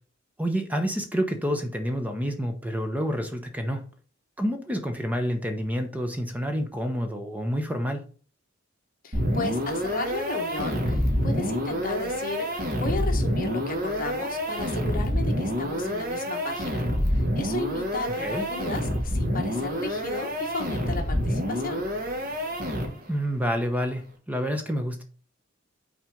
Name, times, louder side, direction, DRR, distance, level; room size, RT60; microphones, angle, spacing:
voice 1, 0.4-3.8 4.4-8.0 18.2-18.4 23.1-25.0, equal, 10° right, 5 dB, 0.9 m, -28 dB
voice 2, 9.0-21.9, left 2 dB, 45° left, 3 dB, 1.4 m, -34 dB
sound 1, 9.1-23.2, equal, 45° right, 1.8 m, -27 dB
6.1 x 4.1 x 5.0 m, 0.39 s
head